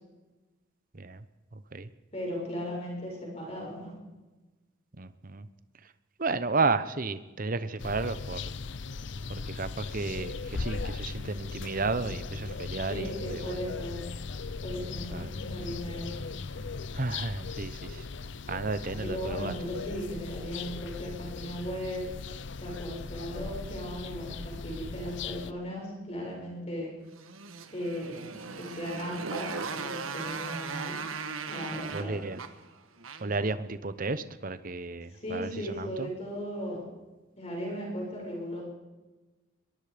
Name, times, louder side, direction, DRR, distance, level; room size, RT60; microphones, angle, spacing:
voice 1, 0.9-1.2 1.5-1.9 5.0-5.5 6.2-8.5 9.3-13.6 15.1-15.3 16.9-18.1 18.5-19.5 31.9-32.4 33.2-36.1, right 3 dB, 45° right, 13 dB, 0.9 m, -33 dB
voice 2, 2.1-3.9 12.9-14.0 14.6-16.1 19.0-22.1 22.6-26.9 27.7-30.9 31.5-32.1 35.1-36.8 37.4-38.6, equal, 30° left, -2 dB, 6.8 m, -37 dB
sound 1, 7.8-25.5, left 4 dB, 60° left, 0.7 m, -38 dB
Motorcycle, 27.1-33.5, right 5 dB, 90° right, 1.5 m, -38 dB
23.5 x 22.0 x 5.2 m, 1.2 s
head